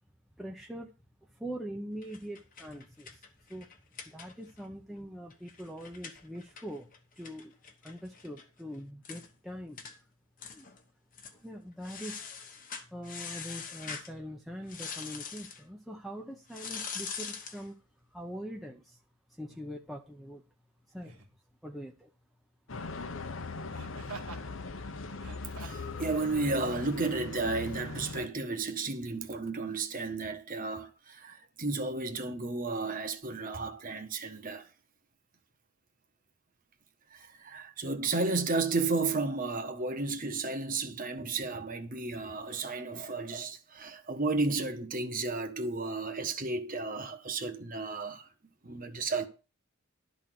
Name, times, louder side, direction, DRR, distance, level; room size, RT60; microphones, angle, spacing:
voice 1, 0.4-0.9 1.3-3.2 3.5-3.7 4.1-6.9 7.2-7.5 7.8-9.8 10.5-10.7 11.4-12.2 12.9-17.8 18.1-19.0 19.3-20.4 20.9-21.2 21.6-22.1, equal, ahead, 0.8 m, -43 dB
sound 1, 2.0-4.7 5.0-5.1 5.3-8.4 8.7-8.8 9.0-9.3 9.8-10.0 10.4-10.8 11.1-11.4 11.8-14.1 14.7-15.6 16.5-17.6, left 6 dB, 35° left, 1.2 m, -43 dB
Laughter, 19.5-19.7 21.0-21.4 23.7-24.5 25.1-25.9 26.7-26.8, right 4 dB, 75° right, 1.9 m, -47 dB
sound 2, 22.7-28.3, left 3 dB, 60° left, 0.8 m, -40 dB
voice 2, 25.5-34.7 37.1-48.3 48.6-49.3, right 3 dB, 40° right, 1.2 m, -33 dB
12.0 x 4.2 x 7.8 m
head